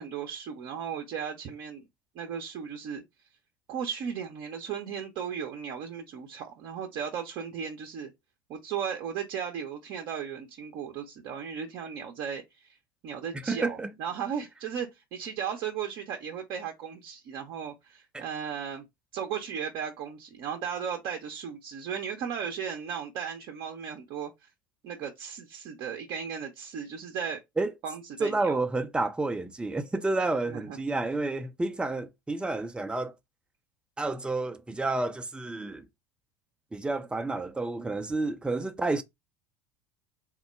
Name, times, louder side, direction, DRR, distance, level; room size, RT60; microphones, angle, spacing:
voice 1, 0.0-1.8 2.1-3.0 3.7-8.1 8.5-12.8 13.0-18.8 19.1-24.5 24.8-27.4 27.8-28.6 30.5-30.8, right 7 dB, 50° right, 0.7 m, -36 dB
voice 2, 13.5-13.9 18.1-18.2 27.6-27.7 28.2-33.1 34.0-35.9 36.7-39.0, right 2 dB, 10° right, 0.5 m, -30 dB
3.6 x 2.1 x 4.3 m
figure-of-eight pair, 75°, 11 cm